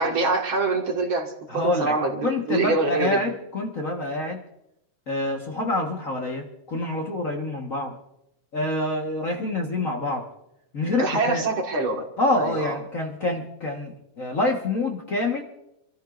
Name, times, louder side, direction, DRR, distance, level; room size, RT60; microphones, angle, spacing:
voice 1, 0.0-3.2 11.0-12.1 12.3-12.8, right 3 dB, 45° right, 1 dB, 2.2 m, -25 dB
voice 2, 1.5-1.9 2.2-4.4 5.1-8.0 8.5-10.3 10.7-11.4 12.2-15.4, left 2 dB, 50° left, 1 dB, 0.9 m, -26 dB
27.5 x 13.5 x 2.6 m, 0.83 s
omnidirectional pair, 3.8 m